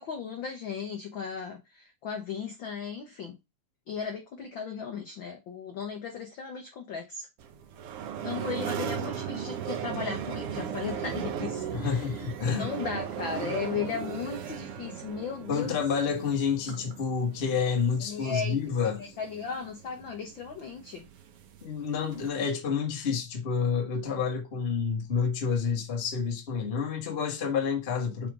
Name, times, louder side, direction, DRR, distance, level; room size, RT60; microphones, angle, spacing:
voice 1, 0.0-3.3 3.9-7.3 8.2-15.8 18.0-18.6 19.0-21.0, left 6 dB, 75° left, 1.1 m, -36 dB
sound 1, 7.4-22.3, right 8 dB, 70° right, 1.5 m, -37 dB
voice 2, 11.7-12.7 15.5-19.0 21.6-28.3, left 6 dB, 45° left, 0.8 m, -29 dB
5.6 x 3.7 x 4.8 m
omnidirectional pair, 3.5 m